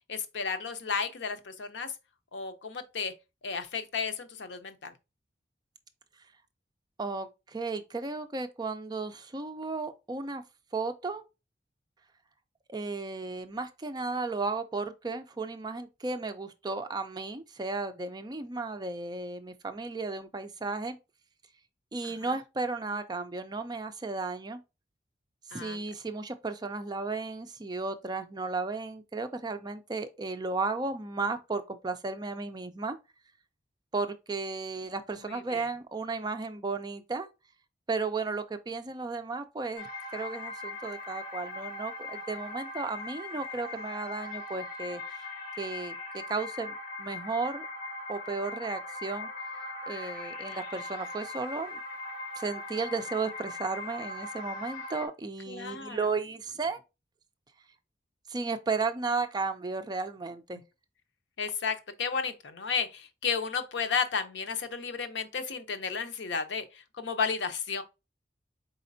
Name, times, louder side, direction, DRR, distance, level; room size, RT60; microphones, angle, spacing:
voice 1, 0.1-1.9 2.3-3.1 3.4-4.9 22.0-22.4 25.5-25.8 35.2-35.7 55.5-56.1 61.4-67.8, left 5 dB, 80° left, 0.7 m, -33 dB
voice 2, 7.0-10.4 10.7-11.2 12.7-21.0 21.9-24.6 25.5-33.0 33.9-37.3 37.9-39.9 40.1-45.0 45.6-47.7 48.1-49.3 49.9-51.8 52.4-56.8 58.3-60.6, right 3 dB, 25° right, 0.4 m, -34 dB
sound 1, 39.7-55.1, left 2 dB, 55° left, 1.4 m, -40 dB
4.2 x 4.0 x 2.6 m
head